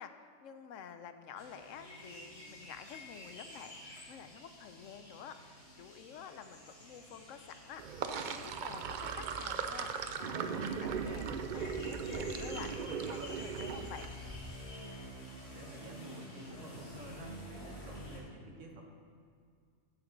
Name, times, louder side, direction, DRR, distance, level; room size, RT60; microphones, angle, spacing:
voice 1, 0.0-14.1, left 7 dB, 85° left, 9 dB, 1.0 m, -50 dB
sound 1, 1.4-18.2, left 1 dB, 55° left, 2.2 m, -50 dB
Sink (filling or washing), 7.8-14.1, right 6 dB, 60° right, 0.5 m, -38 dB
sound 2, 10.5-10.6 11.4-12.6 13.4-14.7 15.4-15.8, left 2 dB, 20° left, 0.5 m, -51 dB
voice 2, 15.5-18.8, right 2 dB, 75° right, 1 dB, 1.5 m, -51 dB
10.5 x 8.7 x 3.9 m, 2.2 s
omnidirectional pair, 1.3 m